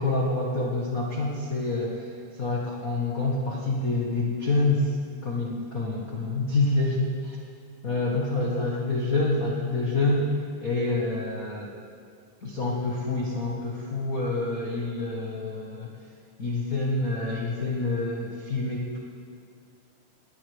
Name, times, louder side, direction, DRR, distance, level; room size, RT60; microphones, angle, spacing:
voice 1, 0.0-5.0 5.2-7.4 7.8-10.3 10.6-11.7 12.4-15.9 16.4-19.0, left 2 dB, 55° left, -3 dB, 0.9 m, -27 dB
19.0 x 19.0 x 3.5 m, 2.2 s
omnidirectional pair, 4.0 m